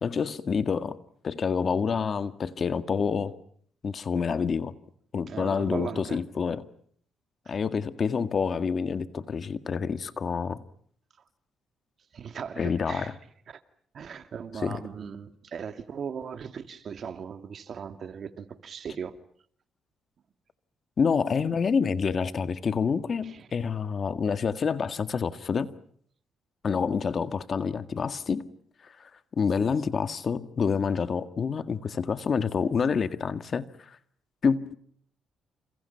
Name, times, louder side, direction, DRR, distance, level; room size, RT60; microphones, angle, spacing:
voice 1, 0.0-1.0 1.2-3.3 3.8-4.7 5.1-6.6 7.5-10.6 12.6-13.1 14.6-14.8 21.0-25.7 26.6-28.5 28.8-29.1 29.4-34.0 34.4-34.7, left 6 dB, 45° left, 1.8 m, -27 dB
voice 2, 5.3-6.2 12.1-13.2 13.5-13.6 13.9-19.2 23.2-23.5, right 7 dB, 55° right, 2.2 m, -38 dB
30.0 x 29.5 x 5.8 m
cardioid pair, 90°, 0 cm